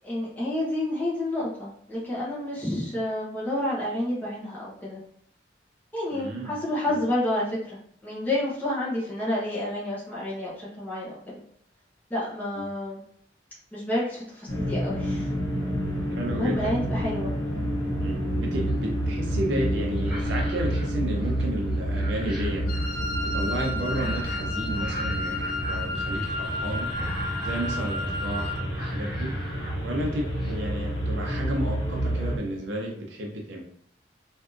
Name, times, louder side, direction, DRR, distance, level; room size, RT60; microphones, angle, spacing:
voice 1, 0.0-5.0 5.9-11.4 12.1-13.0 13.7-15.3 16.3-17.3, left 1 dB, 10° left, -7 dB, 0.8 m, -29 dB
voice 2, 6.1-6.6 6.9-7.0 12.6-12.7 16.1-16.8 18.0-22.6 23.2-25.4 25.7-26.9 27.4-29.3 29.8-33.6, right 1 dB, 80° right, 0 dB, 0.6 m, -32 dB
sound 1, 14.5-32.4, equal, 90° left, 0.9 m, -29 dB
sound 2, 18.7-19.1 19.9-21.5 21.7-23.0 23.9-24.5 24.7-26.5 26.8-27.9 28.2-28.4 28.7-29.8 30.1-30.6, equal, 5° right, 1.1 m, -41 dB
Wind instrument woodwind instrument, 22.7-28.7, left 2 dB, 50° left, 0.6 m, -33 dB
3.5 x 2.6 x 2.4 m, 0.66 s
head